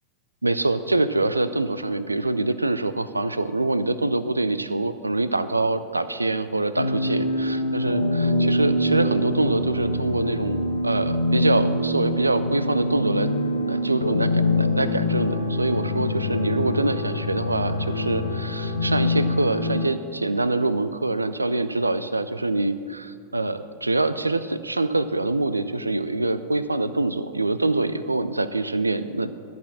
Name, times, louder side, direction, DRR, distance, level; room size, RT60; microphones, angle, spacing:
voice 1, 0.4-13.3 13.7-29.3, right 2 dB, 80° right, 13 dB, 0.4 m, -25 dB
sound 1, 6.8-19.9, left 1 dB, 75° left, 0.7 m, -24 dB
13.5 x 6.1 x 7.1 m, 2.2 s
figure-of-eight pair, 90°, 0 cm